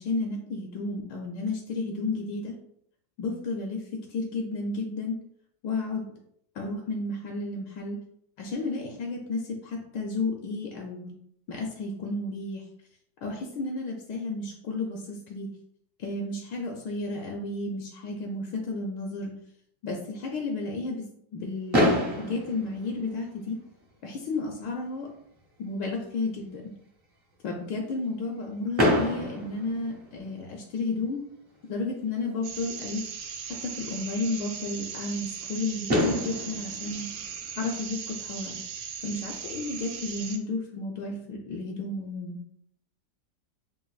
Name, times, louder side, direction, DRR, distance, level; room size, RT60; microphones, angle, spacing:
voice 1, 0.0-2.5 3.2-3.8 4.1-5.2 5.6-6.0 6.5-8.0 8.4-11.1 11.5-12.6 13.2-15.5 16.0-19.3 19.8-21.0 21.3-23.6 24.0-25.1 25.6-26.6 27.4-31.2 31.7-33.0 33.6-37.1 37.6-38.6 39.0-42.4, left 3 dB, 75° left, 1 dB, 1.3 m, -32 dB
Fireworks, 21.7-23.7 24.6-24.7 24.8-25.1 25.4-25.5 28.8-30.6 32.3-32.4 35.4-35.5 35.9-38.2, left 1 dB, 25° right, 0.7 m, -28 dB
sound 1, 32.4-40.4, right 7 dB, 85° right, 1.3 m, -38 dB
5.7 x 2.5 x 2.3 m, 0.71 s
omnidirectional pair, 2.0 m